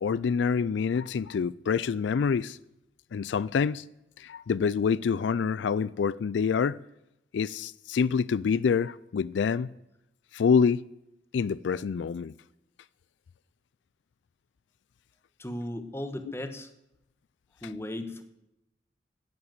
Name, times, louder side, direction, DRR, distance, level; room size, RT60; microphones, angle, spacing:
voice 1, 0.0-2.6 3.1-3.8 4.2-6.8 7.3-9.7 10.3-10.8 11.3-12.3, left 6 dB, 85° left, 0.4 m, -26 dB
voice 2, 15.4-16.7 17.6-18.2, left 1 dB, 15° left, 1.1 m, -36 dB
10.5 x 9.9 x 7.7 m
head